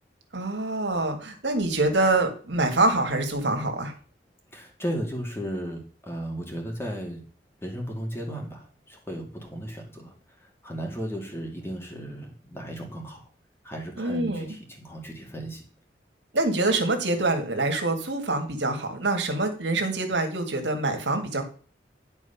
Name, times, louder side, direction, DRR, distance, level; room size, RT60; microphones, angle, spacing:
voice 1, 0.3-3.9 14.0-14.6 16.3-21.4, right 2 dB, 90° right, 5 dB, 1.9 m, -25 dB
voice 2, 4.5-7.2 7.6-10.1 10.6-13.3 13.6-15.6, equal, 15° left, 1 dB, 2.2 m, -35 dB
11.0 x 4.6 x 5.8 m, 0.41 s
head